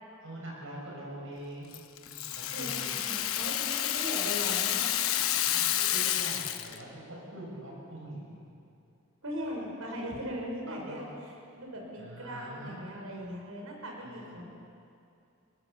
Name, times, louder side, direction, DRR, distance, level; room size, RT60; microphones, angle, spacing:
voice 1, 0.2-3.0 5.4-8.5 10.7-11.1 12.0-12.9 14.0-14.3, right 1 dB, 65° right, -2 dB, 7.2 m, -44 dB
Rattle (instrument), 1.7-6.8, left 11 dB, 80° left, 1.0 m, -30 dB
voice 2, 2.5-5.0 9.2-14.5, equal, 85° right, 0 dB, 5.7 m, -39 dB
23.0 x 19.5 x 7.1 m, 2.5 s
head